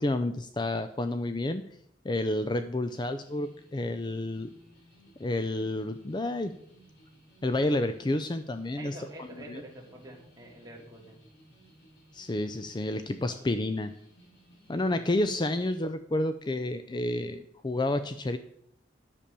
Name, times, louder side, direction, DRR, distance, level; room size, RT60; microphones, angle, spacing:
voice 1, 0.0-1.6 2.0-4.5 5.2-6.5 7.4-9.0 9.5-9.6 12.1-13.9 14.7-18.4, left 1 dB, 25° left, 10 dB, 0.4 m, -30 dB
sound 1, 3.1-15.9, right 1 dB, 60° left, 3.3 m, -58 dB
voice 2, 8.8-11.2 13.1-13.4, right 1 dB, 20° right, 0 dB, 2.5 m, -47 dB
10.5 x 6.9 x 6.7 m, 0.70 s
head